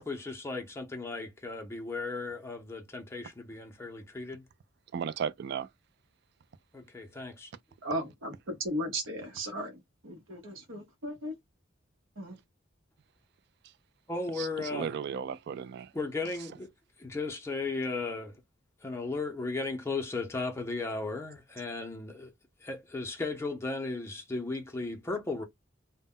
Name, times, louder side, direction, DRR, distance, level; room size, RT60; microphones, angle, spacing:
voice 1, 0.0-4.4 6.7-7.5 14.1-14.9 15.9-16.7 17.0-18.3 18.8-22.3 22.6-25.4, left 3 dB, 15° left, 0.5 m, -35 dB
voice 2, 4.9-5.7 14.4-15.9, right 7 dB, 55° right, 0.3 m, -35 dB
voice 3, 7.8-11.4 12.2-12.4, right 1 dB, 85° right, 0.8 m, -36 dB
2.1 x 2.1 x 3.5 m
head